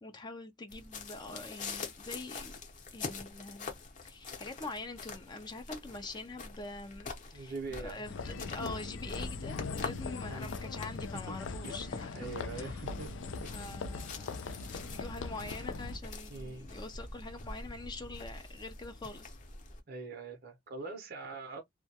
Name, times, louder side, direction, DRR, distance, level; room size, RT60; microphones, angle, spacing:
voice 1, 0.0-2.6 2.9-3.7 4.0-12.9 13.5-19.4, left 2 dB, 20° left, 0.4 m, -45 dB
sound 1, 0.7-19.8, left 3 dB, 40° left, 0.8 m, -45 dB
voice 2, 7.3-8.0 10.2-10.5 11.3-11.4 11.6-11.7 12.1-13.1 13.4-13.5 16.3-16.7 19.9-21.6, right 3 dB, 55° right, 0.6 m, -42 dB
sound 2, 8.0-16.0, left 4 dB, 80° left, 0.4 m, -40 dB
2.2 x 2.1 x 2.7 m
head